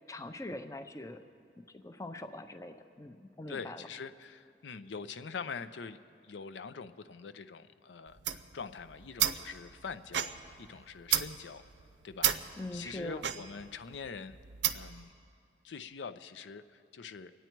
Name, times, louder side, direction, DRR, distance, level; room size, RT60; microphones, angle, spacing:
voice 1, 0.1-1.2 1.7-3.8 12.6-13.3, left 1 dB, 15° left, 8 dB, 0.5 m, -42 dB
voice 2, 3.5-6.0 6.2-10.3 10.6-11.6 12.0-12.3 12.7-14.4 14.7-15.1 15.6-17.3, left 5 dB, 85° left, 11 dB, 0.5 m, -44 dB
sound 1, 8.1-15.0, right 10 dB, 80° right, 0.6 m, -34 dB
25.5 x 9.2 x 4.5 m, 2.5 s
head